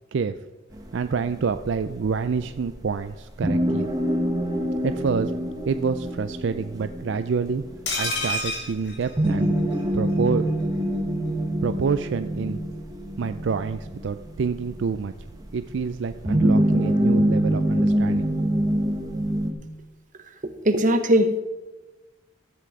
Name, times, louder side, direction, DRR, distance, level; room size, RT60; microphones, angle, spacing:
sound 1, 0.7-19.5, equal, 20° right, 1.3 m, -26 dB
voice 1, 0.9-3.9 4.8-5.3 5.7-7.6 8.0-9.6 9.9-10.4 11.6-12.6 13.2-15.1 15.5-18.3, right 5 dB, 65° right, 10 dB, 0.4 m, -27 dB
sound 2, 7.9-9.8 10.1-10.2 10.5-10.6, left 2 dB, 60° left, 2.4 m, -29 dB
voice 2, 20.4-21.4, equal, 40° right, 8 dB, 0.9 m, -20 dB
14.0 x 7.8 x 4.8 m, 1.1 s
head